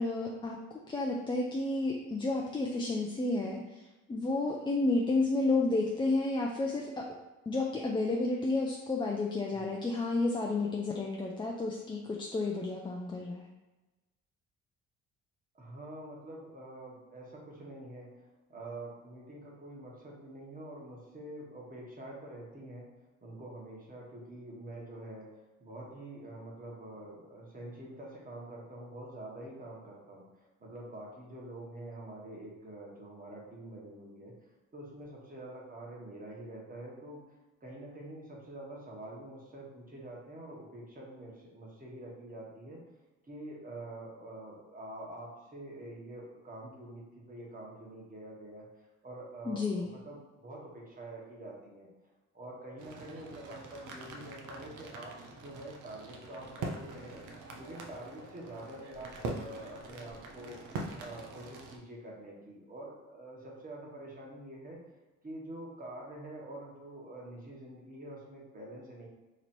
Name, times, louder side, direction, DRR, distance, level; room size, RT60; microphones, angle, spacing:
voice 1, 0.0-7.1 7.5-13.5 49.5-49.9, left 2 dB, 15° left, -1 dB, 0.4 m, -31 dB
voice 2, 15.5-22.9 23.2-34.3 34.7-42.8 43.2-48.7 49.0-51.9 52.3-57.2 57.6-60.6 61.0-64.8 65.2-69.1, right 1 dB, 30° right, -3 dB, 1.3 m, -46 dB
sound 1, 52.8-61.8, right 3 dB, 80° right, 0.7 m, -43 dB
3.1 x 2.7 x 4.3 m, 1.1 s
cardioid pair, 90°, 30 cm